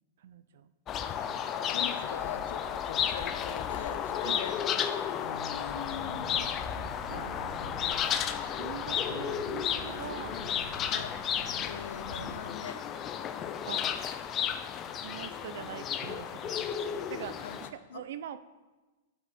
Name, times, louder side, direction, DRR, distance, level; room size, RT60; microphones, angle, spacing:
voice 1, 0.2-0.7 4.2-4.4 8.5-10.3 13.7-13.8 15.0-18.4, right 9 dB, 60° right, 13 dB, 0.5 m, -43 dB
sound 1, 0.9-17.7, left 8 dB, 20° left, 0.4 m, -33 dB
voice 2, 1.7-4.6 5.2-8.3 10.0-11.2 11.6-12.8 17.4-17.6 17.9-18.0, left 7 dB, 80° left, 9 dB, 0.7 m, -44 dB
sound 2, 5.6-12.4, equal, 10° right, 2.8 m, -45 dB
10.5 x 5.6 x 4.2 m, 1.2 s
supercardioid pair, 165°, 0 cm